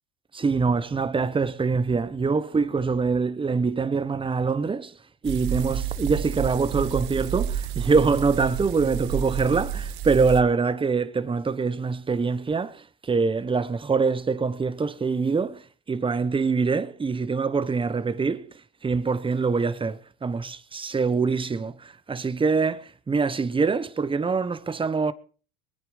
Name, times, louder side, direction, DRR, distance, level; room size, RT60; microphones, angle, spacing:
voice 1, 0.3-4.9 5.2-15.6 15.9-18.5 18.8-25.1, right 4 dB, 15° right, 1.1 m, -24 dB
sound 1, 5.2-10.4, right 9 dB, 70° right, 2.0 m, -30 dB
23.0 x 9.3 x 4.9 m
supercardioid pair, 105°, 33 cm